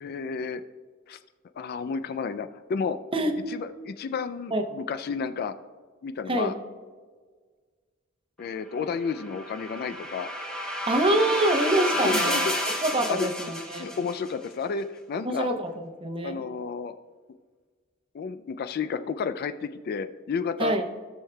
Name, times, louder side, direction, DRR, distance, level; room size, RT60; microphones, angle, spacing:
voice 1, 0.0-0.6 1.1-1.2 1.6-3.0 3.5-5.5 6.0-6.5 8.4-10.3 12.0-12.5 12.9-13.3 13.8-15.5 16.2-17.0 18.1-20.8, left 5 dB, 50° left, 11 dB, 0.3 m, -31 dB
sound 1, 9.0-14.3, equal, 5° left, 1.2 m, -30 dB
voice 2, 10.9-12.5 12.8-13.9 15.2-15.7 16.0-16.4 20.6-20.8, right 1 dB, 25° right, 4 dB, 0.8 m, -25 dB
16.5 x 6.4 x 2.2 m, 1.5 s
head